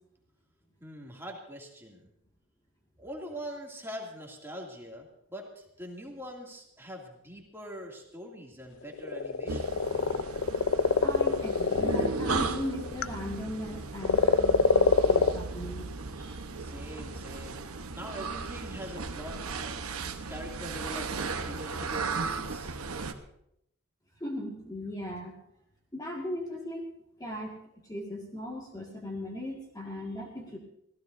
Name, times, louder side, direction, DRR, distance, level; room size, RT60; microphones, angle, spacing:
voice 1, 0.8-2.1 3.0-9.8 16.6-22.8, equal, 10° right, -1 dB, 2.5 m, -43 dB
sound 1, 8.9-13.4 14.0-15.3, left 5 dB, 65° left, 0.6 m, -24 dB
sound 2, 9.5-23.1, right 4 dB, 85° right, 1.0 m, -36 dB
voice 2, 11.0-15.9 16.2-16.4 24.2-25.3 25.9-26.8 27.2-27.6 27.9-30.6, left 1 dB, 15° left, -1 dB, 1.9 m, -38 dB
25.0 x 16.5 x 2.7 m, 0.78 s
head